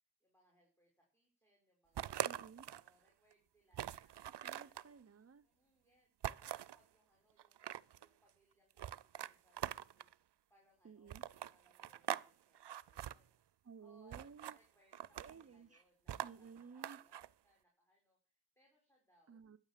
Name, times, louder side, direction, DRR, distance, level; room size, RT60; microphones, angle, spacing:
voice 1, 0.2-2.5 2.7-4.2 4.6-5.0 5.4-10.1 10.5-13.3 13.8-19.4, equal, 5° left, 5.4 m, -74 dB
sound 1, 2.0-2.9 3.3-3.4 3.7-4.9 6.2-6.8 7.4-8.1 8.8-10.1 11.1-12.3 12.5-13.1 14.1-14.6 14.9-15.4 16.1-17.3, right 11 dB, 80° right, 0.6 m, -43 dB
voice 2, 2.2-2.7 4.3-5.5 10.8-11.2 12.6-12.7 13.6-14.6 15.2-15.8 16.2-17.0 19.3-19.6, right 6 dB, 35° right, 0.6 m, -56 dB
12.0 x 9.6 x 7.4 m
wide cardioid pair, 65°, 41 cm